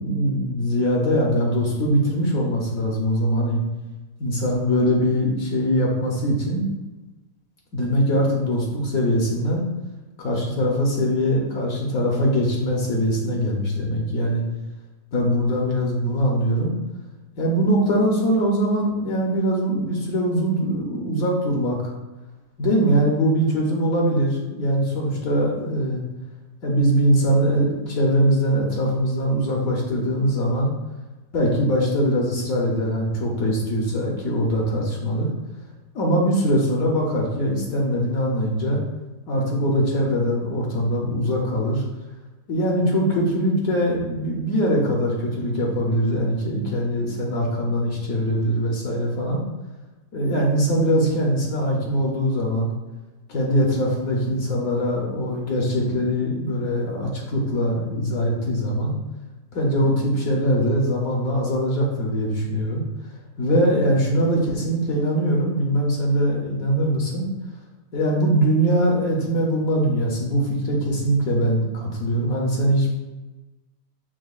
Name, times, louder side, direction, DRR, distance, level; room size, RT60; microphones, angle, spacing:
voice 1, 0.0-3.6 4.2-6.7 7.7-9.7 10.2-14.4 15.1-16.7 17.4-21.8 22.6-26.0 26.6-30.7 31.3-35.3 35.9-38.8 39.3-41.8 42.5-49.4 50.1-52.7 53.3-58.9 59.5-63.1 63.4-67.3 67.9-72.9, equal, 65° left, -2 dB, 1.0 m, -22 dB
6.0 x 2.2 x 2.3 m, 1.1 s
omnidirectional pair, 1.8 m